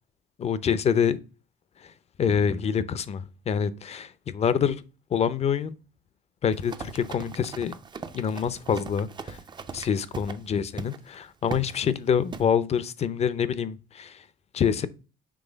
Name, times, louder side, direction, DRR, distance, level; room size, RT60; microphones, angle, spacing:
voice 1, 0.4-1.2 1.8-1.9 2.2-4.8 5.1-5.8 6.4-7.8 8.1-9.4 9.7-14.2 14.5-14.9, left 7 dB, 40° left, 0.6 m, -26 dB
Run, 6.5-10.4 10.8-11.0 11.5-11.8 12.3-12.5, right 5 dB, 25° right, 0.5 m, -39 dB
6.2 x 3.1 x 5.1 m
cardioid pair, 110°, 17 cm